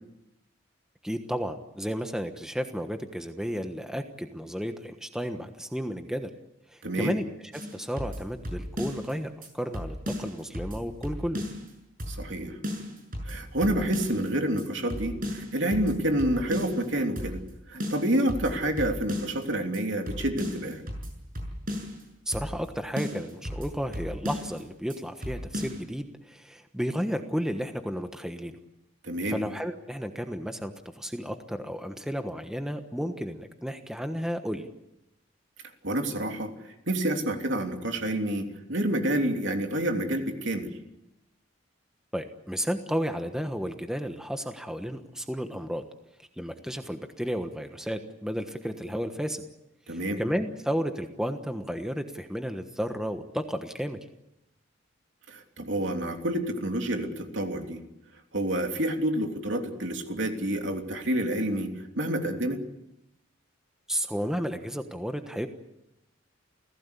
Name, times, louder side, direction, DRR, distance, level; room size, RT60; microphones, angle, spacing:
voice 1, 1.0-6.3 6.7-11.4 22.3-28.6 29.3-34.7 42.1-45.8 46.2-49.4 49.9-54.0 63.9-65.5, equal, 5° right, 6 dB, 1.2 m, -33 dB
voice 2, 6.8-7.2 12.1-12.6 13.2-17.4 17.7-20.8 29.0-29.4 35.8-36.5 36.9-40.7 49.9-50.2 55.3-57.8 58.3-62.6, right 1 dB, 65° right, 4 dB, 3.3 m, -28 dB
sound 1, 7.5-9.1 9.4-9.5 9.7-11.7 12.0-12.4 12.6-14.3 14.6-14.7 14.9-16.9 17.2-17.5 17.8-19.5 19.7-19.8 20.1-22.0 22.3-22.7 23.0-24.6 24.9-25.0 25.2-25.8, left 1 dB, 45° right, 6.7 m, -35 dB
29.5 x 17.0 x 8.4 m, 0.88 s
head